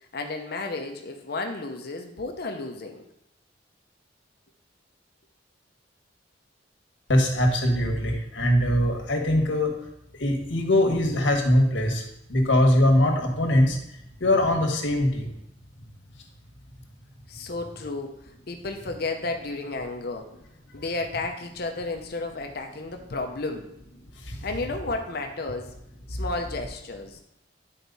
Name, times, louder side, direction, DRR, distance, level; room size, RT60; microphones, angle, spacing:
voice 1, 0.1-3.0 17.3-18.2 18.5-20.3 20.7-23.7 24.4-25.7 26.1-27.2, left 3 dB, 60° left, 5 dB, 0.7 m, -32 dB
voice 2, 7.1-9.7 10.2-12.0 12.3-13.8 14.2-15.3 24.3-24.4, left 1 dB, 85° left, 2 dB, 1.5 m, -21 dB
10.0 x 4.5 x 4.0 m, 0.81 s
head